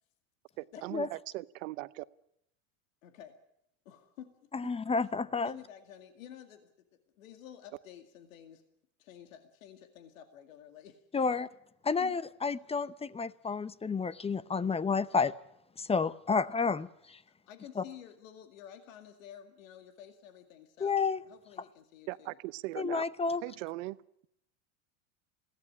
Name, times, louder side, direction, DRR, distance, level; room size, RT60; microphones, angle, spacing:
voice 1, 0.6-2.0 22.1-23.0 23.4-24.0, right 20 dB, 75° right, 0.9 m, -39 dB
voice 2, 3.0-3.4 3.9-4.3 4.6-4.7 5.4-6.7 7.2-8.6 9.0-11.0 11.8-12.1 17.3-22.4, left 10 dB, 85° left, 2.2 m, -51 dB
voice 3, 4.5-5.5 11.1-11.5 11.9-15.3 15.8-17.2 17.8-17.9 20.8-21.2 22.8-23.4, left 5 dB, 15° left, 0.8 m, -30 dB
21.0 x 17.0 x 9.9 m
supercardioid pair, 100°, 39 cm